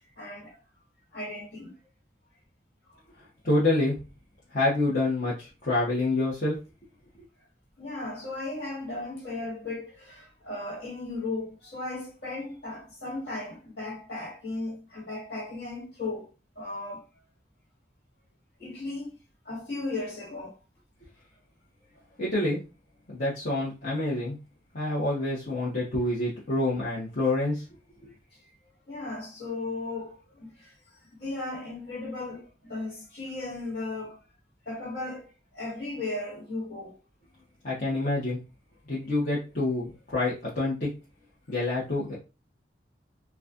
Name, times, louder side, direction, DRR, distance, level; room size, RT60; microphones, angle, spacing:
voice 1, 0.2-0.5 1.1-1.7 7.8-17.0 18.6-19.2 19.4-20.5 28.9-30.7 31.1-34.2 34.6-37.0, left 2 dB, 65° left, 1.8 m, -36 dB
voice 2, 3.4-4.0 4.5-6.5 22.2-22.6 23.1-24.4 24.7-27.6 37.6-38.4 38.9-40.9 41.5-42.1, left 2 dB, 50° left, 1.1 m, -27 dB
4.1 x 2.3 x 2.5 m
head